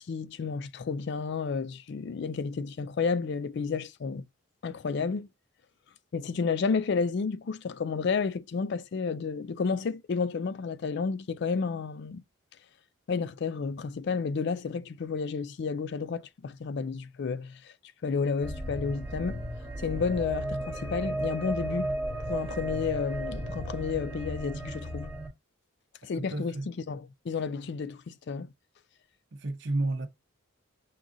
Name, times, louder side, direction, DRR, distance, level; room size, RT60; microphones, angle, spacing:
voice 1, 0.0-4.2 4.6-5.3 6.1-12.2 13.1-17.7 18.0-19.5 19.8-21.9 22.2-25.1 26.0-28.5, left 5 dB, 50° left, 0.3 m, -31 dB
sound 1, 18.4-25.3, right 1 dB, 10° right, 1.1 m, -34 dB
voice 2, 26.2-26.7 29.3-30.1, right 2 dB, 55° right, 0.6 m, -31 dB
6.0 x 2.4 x 2.6 m
head